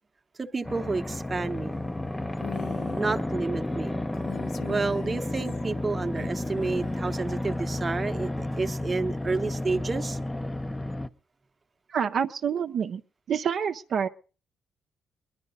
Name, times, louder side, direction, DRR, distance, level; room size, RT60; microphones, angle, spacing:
voice 1, 0.4-1.8 3.0-4.0 4.7-10.2, right 3 dB, 25° right, 0.9 m, -30 dB
sound 1, 0.6-11.1, left 1 dB, 10° left, 0.6 m, -32 dB
Female speech woman speaking, 2.4-3.1 4.1-5.6 6.2-7.0, left 8 dB, 65° left, 0.8 m, -41 dB
voice 2, 11.9-13.0 13.3-14.1, right 7 dB, 60° right, 0.6 m, -27 dB
21.0 x 11.5 x 4.0 m
cardioid pair, 90°, 0 cm